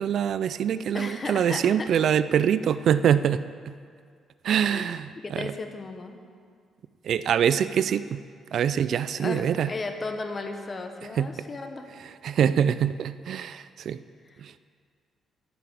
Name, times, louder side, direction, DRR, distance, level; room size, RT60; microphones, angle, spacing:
voice 1, 0.0-3.7 4.4-5.5 7.0-8.2 8.5-9.7 11.2-11.3 12.2-14.0 14.4-14.6, right 8 dB, 65° right, 14 dB, 0.3 m, -24 dB
voice 2, 0.9-1.9 4.7-4.9 5.2-6.2 9.2-11.9, left 3 dB, 35° left, 5 dB, 1.2 m, -35 dB
11.0 x 6.0 x 8.5 m, 2.1 s
cardioid pair, 90°, 0 cm